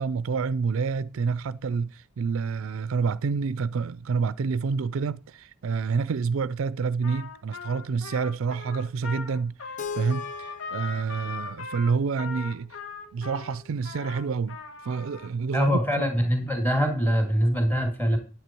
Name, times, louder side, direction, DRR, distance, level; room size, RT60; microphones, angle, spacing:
voice 1, 0.0-12.7 13.1-14.6 14.8-15.8, right 5 dB, 75° right, 0.4 m, -28 dB
Trumpet, 7.0-15.3, left 5 dB, 70° left, 1.8 m, -39 dB
Keyboard (musical), 9.8-12.7, left 5 dB, 35° left, 0.7 m, -40 dB
voice 2, 15.5-18.2, equal, 10° left, 2.4 m, -23 dB
9.7 x 8.3 x 4.5 m
head